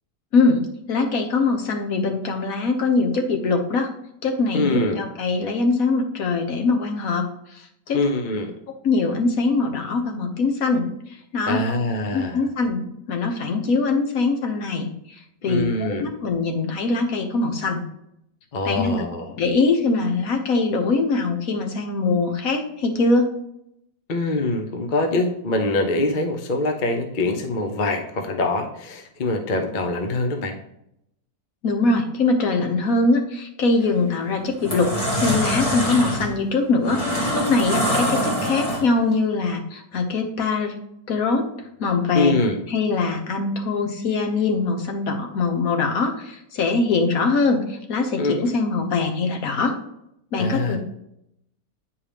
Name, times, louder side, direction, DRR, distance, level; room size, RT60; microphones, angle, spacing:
voice 1, 0.3-3.9 4.2-7.2 7.9-8.0 8.8-10.8 11.3-11.6 12.1-14.9 15.4-17.8 18.6-18.9 19.4-23.3 31.6-34.9 35.2-37.0 37.3-40.7 41.1-41.5 41.8-42.3 42.7-49.8 50.3-50.8, left 3 dB, 65° left, 4 dB, 1.4 m, -22 dB
voice 2, 4.5-5.0 7.9-8.5 11.5-12.5 15.5-16.1 18.5-19.3 24.1-30.6 42.1-42.6 48.2-48.5 50.4-50.8, left 2 dB, 40° left, 4 dB, 0.8 m, -24 dB
sound 1, 33.7-34.0 34.4-39.1, equal, 20° left, 1.8 m, -24 dB
8.8 x 4.8 x 3.4 m, 0.78 s
omnidirectional pair, 1.7 m